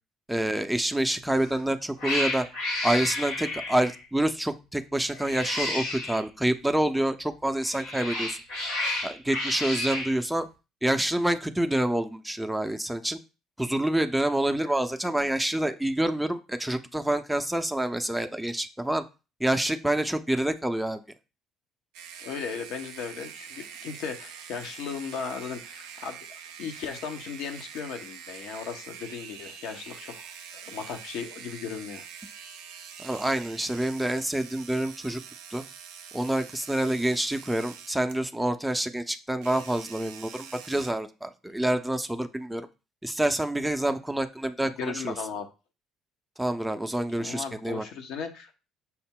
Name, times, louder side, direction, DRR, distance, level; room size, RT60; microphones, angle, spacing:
voice 1, 0.3-2.5 2.8-8.4 8.8-10.5 10.8-13.2 13.6-19.0 19.4-21.0 33.0-35.2 35.5-35.6 36.1-42.7 43.0-45.1 46.4-47.9, right 1 dB, 5° right, 7 dB, 0.5 m, -27 dB
Cat, 1.3-1.6 2.0-4.0 5.1-6.2 7.5-10.1, left 2 dB, 85° left, 2.1 m, -31 dB
sound 1, 21.9-38.3 39.4-40.9, right 8 dB, 75° right, 0.5 m, -45 dB
voice 2, 22.2-26.3 26.6-30.3 30.6-32.1 44.6-45.5 47.2-48.6, left 6 dB, 70° left, 5 dB, 0.7 m, -36 dB
5.7 x 2.0 x 3.6 m, 0.30 s
hypercardioid pair, 55°, 0 cm